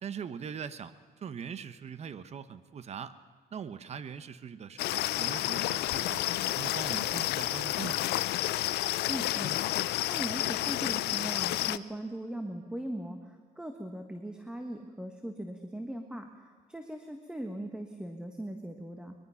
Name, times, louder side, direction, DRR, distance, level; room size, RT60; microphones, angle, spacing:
voice 1, 0.0-3.2 3.5-6.2 6.5-8.2, right 7 dB, 40° right, 13 dB, 1.0 m, -41 dB
sound 1, 4.8-11.8, left 15 dB, 75° left, 0.6 m, -30 dB
voice 2, 9.1-19.1, right 1 dB, 5° right, 4 dB, 1.5 m, -40 dB
22.5 x 22.0 x 5.8 m, 1.5 s
cardioid pair, 110°, 17 cm